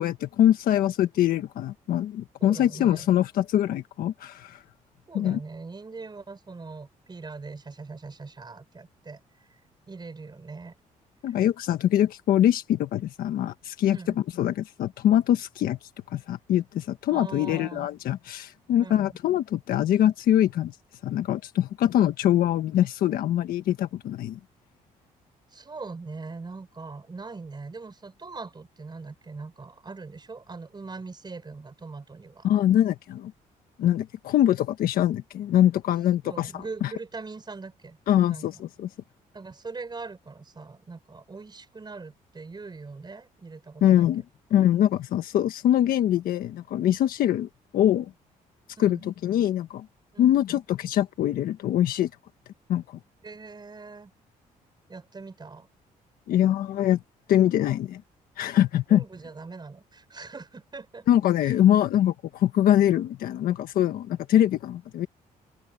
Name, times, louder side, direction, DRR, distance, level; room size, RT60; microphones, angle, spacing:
voice 1, 0.0-4.6 5.1-5.4 11.2-14.0 14.4-20.8 21.0-24.4 32.4-33.3 33.8-36.9 38.1-38.9 43.8-44.2 44.5-48.1 48.8-49.9 50.2-52.1 52.7-53.0 56.3-57.0 57.3-58.0 58.4-59.0 61.1-65.1, left 11 dB, 75° left, 1.4 m, -23 dB
voice 2, 2.4-3.1 5.1-9.2 9.5-9.6 9.9-10.7 11.3-11.4 13.9-14.2 17.1-17.9 18.8-19.2 25.5-32.5 36.2-38.0 38.3-38.5 39.3-44.1 48.8-49.1 50.1-50.4 53.2-54.1 54.9-55.7 58.9-61.1 61.4-61.6, right 4 dB, 30° right, 5.7 m, -41 dB
open air
cardioid pair, 80°, 15 cm